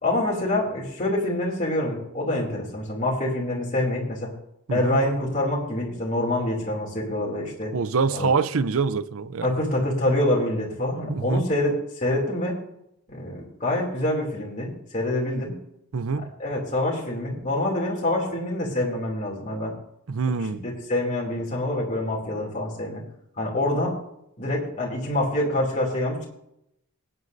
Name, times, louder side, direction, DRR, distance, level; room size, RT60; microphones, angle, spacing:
voice 1, 0.0-4.3 4.7-7.7 8.1-8.3 9.4-12.5 13.1-15.5 16.4-19.7 20.4-23.0 23.4-24.0 24.4-26.3, left 1 dB, 35° left, 2.8 m, -26 dB
voice 2, 7.7-9.5 11.1-11.4 15.9-16.3 20.1-20.6, right 5 dB, 65° right, 0.6 m, -25 dB
18.5 x 9.6 x 2.6 m
head